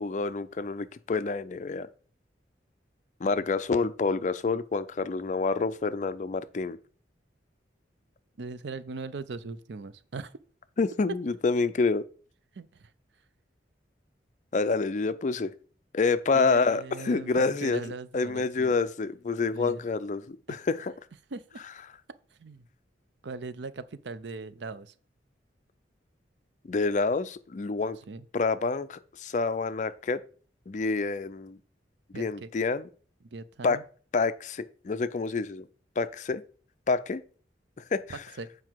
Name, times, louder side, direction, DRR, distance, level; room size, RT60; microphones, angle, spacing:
voice 1, 0.0-1.9 3.2-6.8 10.8-12.0 14.5-15.5 15.9-17.8 18.1-20.9 26.6-28.0 28.3-30.2 30.7-31.6 32.1-32.9 33.6-33.8 34.1-35.7 36.0-36.4 36.9-37.2 37.9-38.2, left 4 dB, 40° left, 0.4 m, -28 dB
voice 2, 8.4-10.3 12.6-12.9 16.3-18.7 19.5-19.8 21.3-21.6 22.4-22.7 23.2-24.9 28.1-28.3 32.1-32.5 33.3-33.8 38.1-38.5, right 3 dB, 75° right, 0.5 m, -40 dB
7.8 x 4.8 x 4.6 m
head